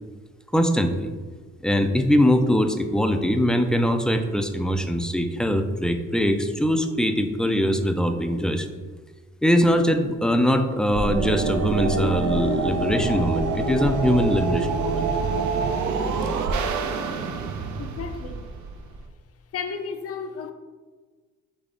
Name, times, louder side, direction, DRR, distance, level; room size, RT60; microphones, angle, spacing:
voice 1, 0.5-1.1 1.6-8.7 9.4-15.1, equal, 5° left, 0.3 m, -22 dB
sound 1, 10.9-19.0, right 4 dB, 70° right, 0.5 m, -26 dB
voice 2, 17.8-18.5 19.5-20.5, left 6 dB, 50° left, 0.5 m, -33 dB
3.9 x 3.5 x 3.7 m
cardioid pair, 90°, 30 cm